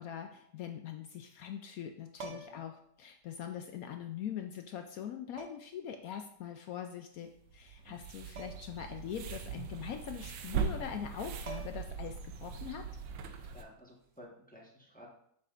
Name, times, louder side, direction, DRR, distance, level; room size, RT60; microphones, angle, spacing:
voice 1, 0.0-12.9, left 9 dB, 80° left, 5 dB, 0.7 m, -42 dB
sound 1, 2.1-2.8 4.1-4.2 5.4-5.8 8.4-8.8 9.1-9.2 11.0-11.1 11.5-12.0 14.0-14.2, right 4 dB, 55° right, 0.9 m, -47 dB
voice 2, 2.2-2.6 13.4-15.1, equal, 5° left, -3 dB, 0.9 m, -54 dB
sound 2, 7.5-13.6, right 6 dB, 80° right, 1.4 m, -40 dB
7.2 x 6.8 x 2.5 m, 0.67 s
omnidirectional pair, 2.1 m